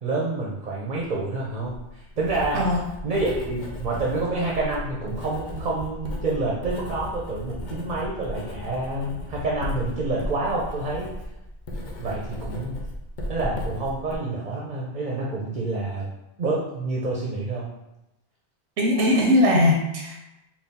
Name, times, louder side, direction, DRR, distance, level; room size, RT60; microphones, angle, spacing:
voice 1, 0.0-2.6 3.0-11.1 11.7-12.8 13.3-16.1 16.4-17.7, right 2 dB, 45° right, -4 dB, 0.8 m, -28 dB
Writing, 1.4-14.1, left 1 dB, 50° left, 0.8 m, -35 dB
voice 2, 18.8-20.2, left 1 dB, 90° right, -1 dB, 1.1 m, -20 dB
4.2 x 2.3 x 3.5 m, 0.92 s
omnidirectional pair, 1.1 m